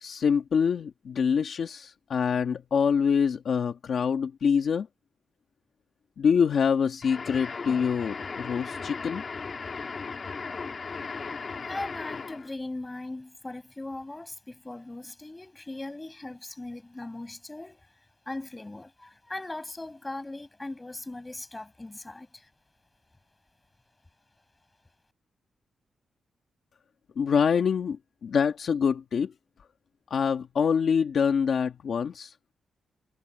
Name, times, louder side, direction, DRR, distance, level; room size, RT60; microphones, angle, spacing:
voice 1, 0.0-4.9 6.2-9.2 27.2-29.3 30.1-32.3, left 6 dB, 55° left, 1.4 m, -25 dB
sound 1, 7.0-12.5, left 4 dB, 35° left, 1.6 m, -37 dB
voice 2, 11.7-17.9 18.3-22.5, left 2 dB, 15° left, 5.8 m, -39 dB
wide cardioid pair, 160°, 0 cm